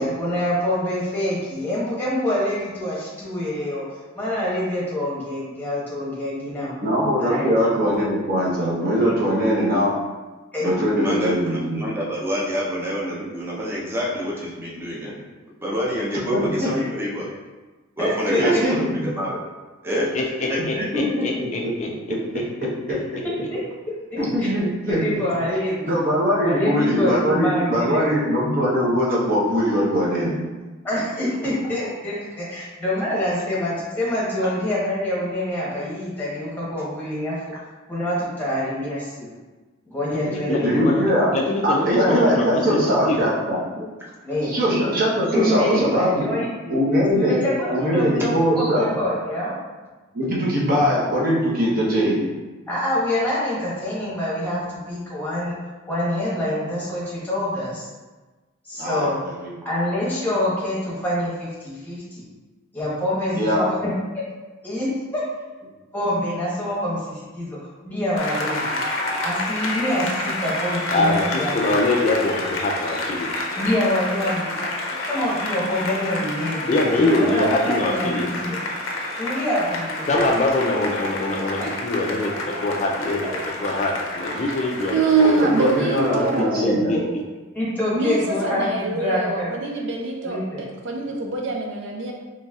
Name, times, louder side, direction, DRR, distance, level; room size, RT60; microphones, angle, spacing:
voice 1, 0.0-6.7 7.2-7.5 9.0-9.2 10.5-10.7 18.0-18.6 23.2-23.6 24.1-24.5 24.9-26.0 26.4-28.1 30.8-37.5 37.9-39.3 39.9-41.1 41.9-42.4 44.2-44.5 45.3-46.5 47.1-49.5 52.7-55.6 55.9-57.9 58.6-59.2 59.6-62.2 62.7-63.9 64.6-65.2 65.9-67.6 67.8-68.8 69.2-71.8 73.5-74.7 75.0-78.6 79.2-80.0 80.7-80.8 81.6-81.7 83.2-83.3 85.2-85.5 86.6-87.0 87.5-89.6 90.2-90.6, left 1 dB, 10° left, -7 dB, 1.0 m, -26 dB
voice 2, 6.8-9.9 10.6-11.8 16.3-16.7 18.4-19.1 20.9-21.7 22.1-23.0 24.2-25.0 25.9-30.4 40.5-41.3 41.6-43.6 44.4-46.3 46.7-47.4 47.7-48.9 50.1-52.2 58.8-59.1 59.4-59.5 63.3-63.7 85.4-86.9, equal, 45° right, -5 dB, 0.9 m, -21 dB
voice 3, 10.6-15.2 15.6-17.3 18.0-19.4 19.8-20.1 20.5-20.9 43.8-43.9, equal, 10° right, -5 dB, 0.6 m, -27 dB
voice 4, 20.1-22.4 40.3-43.2 70.9-73.3 76.7-78.3 80.1-85.3 86.6-87.0, left 2 dB, 35° left, 0 dB, 0.3 m, -24 dB
Applause, 68.2-86.4, left 2 dB, 80° left, 0.6 m, -29 dB
voice 5, 84.2-86.7 87.9-92.1, right 3 dB, 60° right, 1 dB, 0.4 m, -24 dB
4.0 x 3.1 x 2.3 m, 1.2 s
head